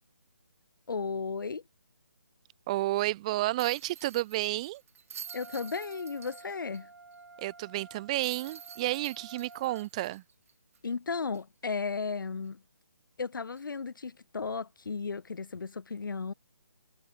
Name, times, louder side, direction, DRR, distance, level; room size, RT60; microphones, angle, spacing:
voice 1, 0.9-1.6 5.3-6.9 10.8-12.6 13.2-16.3, left 5 dB, 80° left, 0.7 m, -35 dB
voice 2, 2.7-4.8 7.4-10.2, right 17 dB, 20° right, 0.6 m, -31 dB
sound 1, 3.6-6.8 7.1-7.2 8.2-10.9 11.3-11.4 13.6-13.8, right 7 dB, 45° right, 2.4 m, -48 dB
Wind instrument woodwind instrument, 5.3-9.9, right 3 dB, 85° right, 2.7 m, -51 dB
hypercardioid pair, 160°, 11 cm